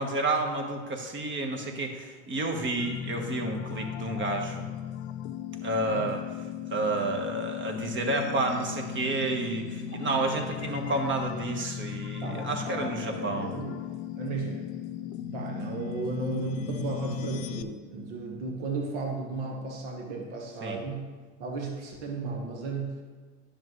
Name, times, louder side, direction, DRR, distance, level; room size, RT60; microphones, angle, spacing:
voice 1, 0.0-4.7 5.6-6.2 6.7-13.5 20.6-20.8, right 2 dB, 35° right, 3 dB, 1.3 m, -30 dB
sound 1, 2.8-17.6, left 9 dB, 70° left, 0.6 m, -37 dB
voice 2, 5.8-6.1 9.9-10.0 12.2-13.8 14.2-14.7 15.3-21.1 21.4-23.0, right 3 dB, 70° right, 0 dB, 1.4 m, -35 dB
10.0 x 6.5 x 3.1 m, 1.4 s
hypercardioid pair, 85°, 35 cm